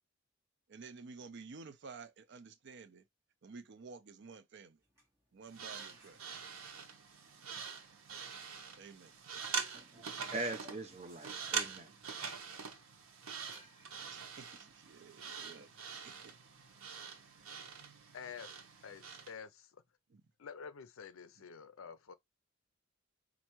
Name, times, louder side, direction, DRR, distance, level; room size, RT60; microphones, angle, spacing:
voice 1, 0.7-3.0 3.4-4.8 5.3-6.4 8.8-9.4 14.1-15.7 16.0-16.3 20.1-20.2, right 4 dB, 55° right, 0.5 m, -52 dB
sound 1, 4.7-6.7 7.4-15.3, equal, 10° right, 1.5 m, -65 dB
sound 2, 5.5-19.4, right 6 dB, 80° right, 0.9 m, -44 dB
voice 2, 9.7-12.0, right 2 dB, 30° right, 0.8 m, -42 dB
voice 3, 18.1-18.5 18.8-19.7 20.4-22.1, left 6 dB, 70° left, 0.5 m, -49 dB
4.4 x 2.6 x 2.9 m
head